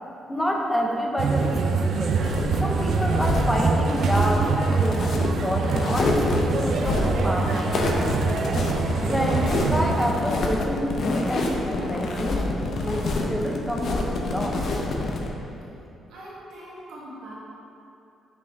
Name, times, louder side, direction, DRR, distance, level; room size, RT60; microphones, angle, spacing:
voice 1, 0.3-7.7 9.1-14.8, equal, 5° left, 0 dB, 0.8 m, -28 dB
sound 1, 1.2-10.1, right 4 dB, 65° right, 0.4 m, -25 dB
sound 2, 2.1-15.3, left 2 dB, 60° left, 0.7 m, -27 dB
voice 2, 16.1-17.3, right 1 dB, 85° right, -7 dB, 1.5 m, -41 dB
5.4 x 5.2 x 3.5 m, 2.8 s
cardioid pair, 90°, 0 cm